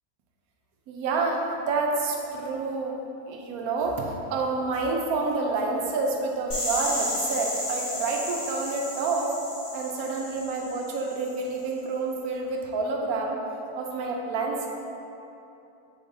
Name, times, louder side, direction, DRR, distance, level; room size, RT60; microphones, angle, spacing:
voice 1, 0.9-2.9 3.3-9.3 9.7-13.4 13.8-14.7, right 3 dB, 70° right, 0 dB, 1.0 m, -28 dB
sound 1, 6.5-11.3, left 1 dB, 55° left, 1.6 m, -33 dB
5.0 x 3.8 x 2.6 m, 2.9 s
omnidirectional pair, 1.7 m